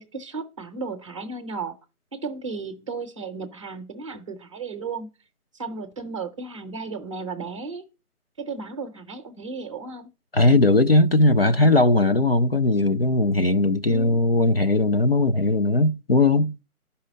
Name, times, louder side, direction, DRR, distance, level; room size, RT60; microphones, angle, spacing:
voice 1, 0.0-1.8 2.1-5.1 5.5-7.8 8.4-10.1 13.8-14.2, right 4 dB, 20° right, 0.8 m, -34 dB
voice 2, 10.3-16.5, left 2 dB, 45° left, 0.5 m, -19 dB
11.5 x 5.5 x 6.5 m
figure-of-eight pair, 150°, 45 cm